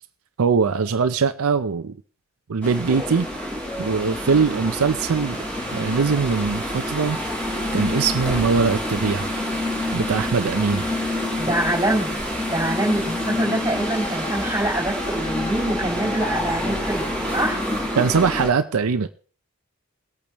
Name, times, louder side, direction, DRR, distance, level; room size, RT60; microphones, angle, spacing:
voice 1, 0.4-2.0 2.5-3.3 3.8-5.4 5.7-7.2 7.7-9.3 9.9-10.8 17.9-19.1, right 5 dB, 70° right, 0.5 m, -21 dB
sound 1, 2.6-18.5, left 1 dB, 5° left, 4.7 m, -27 dB
voice 2, 11.4-12.1 12.5-17.1 17.3-17.6, right 1 dB, 15° right, 4.4 m, -24 dB
22.0 x 8.6 x 3.0 m
head